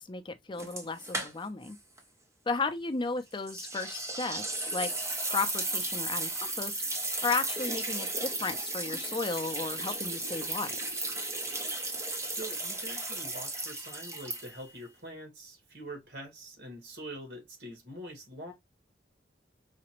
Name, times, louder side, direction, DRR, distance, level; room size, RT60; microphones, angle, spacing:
voice 1, 0.0-1.8 2.5-4.9 5.3-6.8 7.2-10.7, left 4 dB, 25° left, 0.5 m, -34 dB
sound 1, 0.6-1.7 2.0-2.1 3.5-14.8, right 2 dB, 15° right, 0.7 m, -35 dB
voice 2, 12.3-18.5, right 1 dB, 70° right, 1.6 m, -44 dB
4.8 x 2.2 x 2.9 m
head